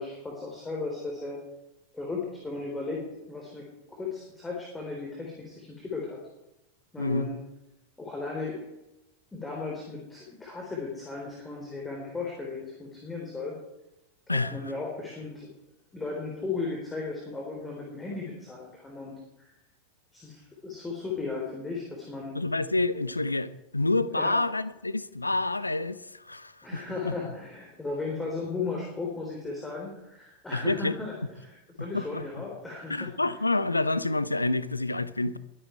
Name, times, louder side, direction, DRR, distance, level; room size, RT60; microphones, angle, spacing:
voice 1, 0.0-1.4 1.9-3.0 3.3-6.2 6.9-7.4 8.0-8.6 9.3-13.5 14.3-15.5 15.9-19.5 20.1-22.3 24.1-24.4 26.6-33.4, left 3 dB, 10° left, 3.7 m, -36 dB
voice 2, 22.3-27.1 30.5-30.9 31.8-32.2 32.9-35.4, left 2 dB, 80° left, 0.7 m, -28 dB
22.0 x 9.8 x 4.5 m
figure-of-eight pair, 90°, 0 cm